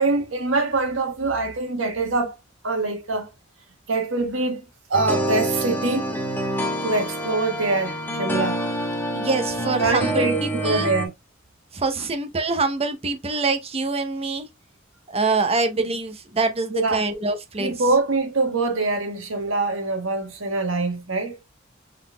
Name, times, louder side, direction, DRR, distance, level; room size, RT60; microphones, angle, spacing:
voice 1, 0.0-2.3 2.6-3.3 3.9-6.1 6.8-8.6 9.8-11.1 12.0-12.1 15.8-15.9 16.7-17.0 17.6-21.4, right 3 dB, 85° right, 1.3 m, -24 dB
sound 1, 4.9-11.1, right 1 dB, 10° left, 1.1 m, -27 dB
voice 2, 9.1-10.9 11.7-14.5 15.1-17.7, right 3 dB, 30° right, 0.8 m, -25 dB
5.5 x 4.0 x 2.2 m
head